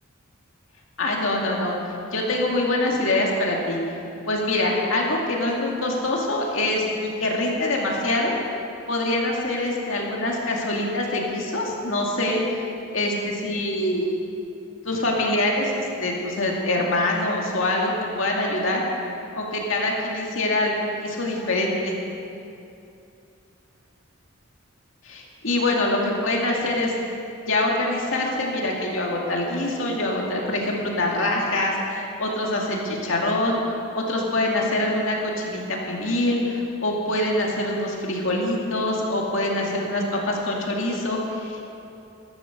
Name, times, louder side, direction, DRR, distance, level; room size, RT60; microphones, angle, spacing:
voice 1, 1.0-1.8 2.1-3.8 4.3-8.4 8.9-12.4 12.9-14.1 14.8-18.8 19.4-21.9 25.0-26.9 27.4-33.6 33.9-41.6, left 1 dB, 70° left, -2 dB, 2.3 m, -24 dB
13.5 x 12.5 x 6.9 m, 2.7 s
head